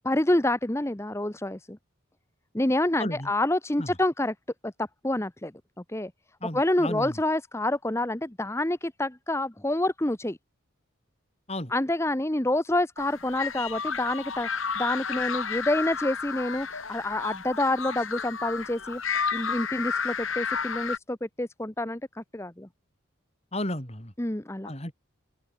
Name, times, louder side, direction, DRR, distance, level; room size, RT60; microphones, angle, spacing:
voice 1, 0.0-1.8 2.5-4.3 4.6-5.5 5.9-6.1 6.5-10.4 11.7-19.0 19.3-22.7 24.2-24.7, left 1 dB, 15° left, 0.9 m, -27 dB
voice 2, 6.4-7.1 11.5-11.7 23.5-24.1 24.6-24.9, left 1 dB, 30° left, 6.4 m, -33 dB
sound 1, 13.0-21.0, left 6 dB, 85° left, 5.0 m, -32 dB
open air
head